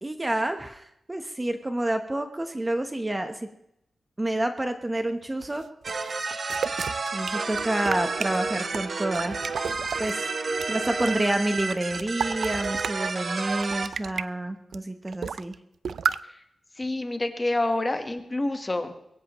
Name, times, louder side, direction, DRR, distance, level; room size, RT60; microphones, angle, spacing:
voice 1, 0.0-3.5 4.2-5.6 7.1-9.5 10.0-10.3 10.7-15.6, right 1 dB, 15° right, 6 dB, 0.9 m, -28 dB
sound 1, 5.4-10.1 10.5-13.1 13.5-14.2 14.7-14.8 15.1-15.6 15.8-16.2, right 6 dB, 75° right, 0.4 m, -33 dB
sound 2, 5.8-13.9, right 4 dB, 50° right, 1.1 m, -30 dB
voice 2, 16.8-18.9, left 2 dB, 20° left, 7 dB, 1.3 m, -28 dB
22.0 x 16.5 x 3.0 m, 0.82 s
wide cardioid pair, 145°, 0 cm